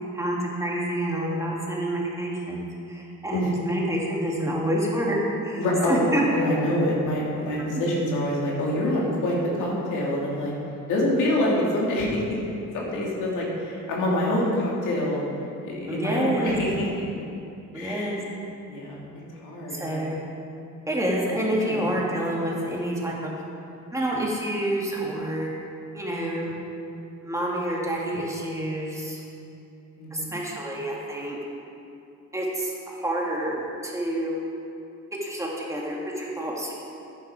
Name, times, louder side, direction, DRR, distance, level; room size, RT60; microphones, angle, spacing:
voice 1, 0.1-6.3 15.9-16.6 17.7-18.2 19.7-20.2 20.9-23.4 23.9-25.5 25.9-26.5 27.2-29.2 30.1-31.4 32.3-34.4 35.2-36.7, right 1 dB, 10° right, -4 dB, 2.4 m, -28 dB
voice 2, 5.6-6.0 6.3-10.5 10.9-12.4 12.7-15.2 15.6-17.2 17.7-18.2 18.7-19.0 19.4-20.0 21.6-21.8 30.0-30.3, left 1 dB, 85° left, -4 dB, 2.7 m, -26 dB
10.5 x 9.9 x 4.9 m, 2.6 s
cardioid pair, 90°, 30 cm